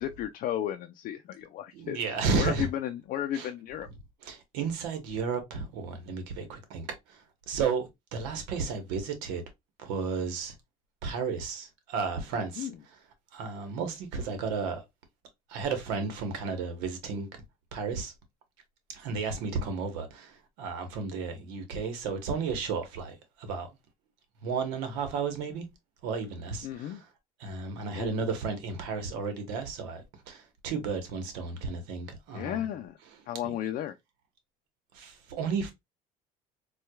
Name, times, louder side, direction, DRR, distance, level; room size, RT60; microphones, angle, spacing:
voice 1, 0.0-2.0 2.4-3.9 12.6-12.8 26.6-27.0 27.9-28.2 32.3-33.0 33.3-34.0, left 11 dB, 55° left, 0.4 m, -33 dB
voice 2, 1.7-2.7 3.3-3.5 4.2-7.8 8.1-9.4 9.8-10.5 11.0-12.7 13.3-14.8 15.5-17.3 17.7-18.1 18.9-23.7 24.4-25.7 26.0-27.0 27.4-32.7 33.4-33.5 34.9-35.7, right 5 dB, 90° right, 1.0 m, -33 dB
4.4 x 2.3 x 2.2 m
cardioid pair, 105°, 17 cm